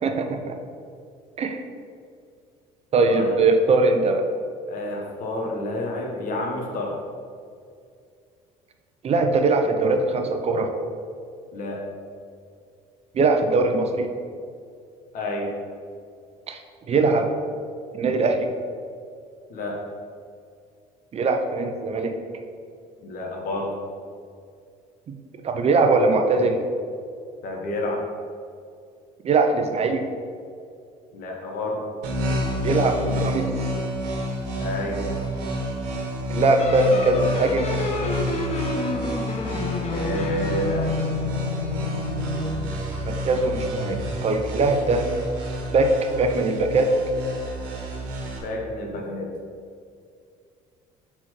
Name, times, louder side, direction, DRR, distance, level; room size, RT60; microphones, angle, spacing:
voice 1, 0.0-0.5 1.4-1.6 2.9-4.3 9.0-10.7 13.1-14.1 16.5-16.6 16.9-17.3 17.9-18.5 21.1-22.1 25.1-25.2 25.4-26.6 29.2-30.0 32.6-33.5 36.3-37.7 43.0-45.1 45.7-47.0, right 3 dB, 40° right, 5 dB, 0.7 m, -21 dB
voice 2, 3.0-3.4 4.7-6.9 11.5-11.9 15.1-15.5 19.5-19.8 23.0-23.7 27.4-28.0 31.1-31.8 34.6-35.0 39.9-40.9 48.4-49.3, left 1 dB, 60° left, 0 dB, 1.4 m, -29 dB
sound 1, 32.0-48.4, equal, 85° right, 1.3 m, -29 dB
sound 2, 36.6-42.6, left 2 dB, 40° left, 0.9 m, -29 dB
6.2 x 4.3 x 4.5 m, 2.3 s
supercardioid pair, 90°, 16 cm